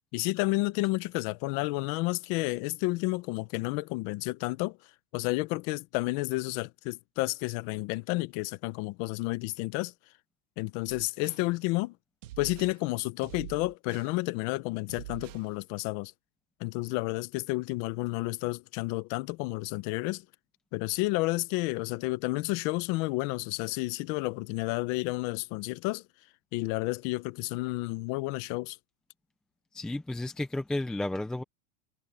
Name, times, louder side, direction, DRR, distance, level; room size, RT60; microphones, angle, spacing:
voice 1, 0.1-4.8 5.1-9.9 10.6-11.9 12.4-16.1 16.6-20.2 20.7-26.0 26.5-28.8, left 22 dB, 35° left, 0.7 m, -31 dB
sound 1, 10.9-11.5 12.2-12.8 13.2-14.1 14.9-15.5, right 16 dB, 85° right, 2.6 m, -45 dB
voice 2, 29.7-31.4, left 1 dB, ahead, 0.4 m, -32 dB
supercardioid pair, 160°, 37 cm